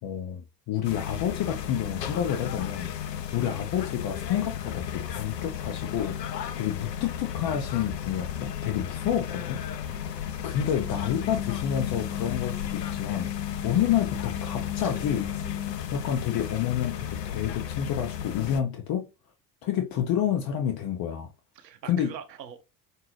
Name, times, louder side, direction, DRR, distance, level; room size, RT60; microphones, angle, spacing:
voice 1, 0.0-2.9 3.3-6.1 6.6-9.6 10.4-13.3 13.6-15.3 15.9-19.0 19.6-21.3 21.9-22.1, left 9 dB, 45° left, 0.9 m, -29 dB
sound 1, 0.8-18.6, left 9 dB, 90° left, 0.6 m, -34 dB
voice 2, 9.8-10.4 21.6-22.6, right 8 dB, 90° right, 0.7 m, -44 dB
sound 2, 10.8-15.8, left 11 dB, 30° left, 1.6 m, -35 dB
5.7 x 2.7 x 3.1 m
hypercardioid pair, 70°, 48 cm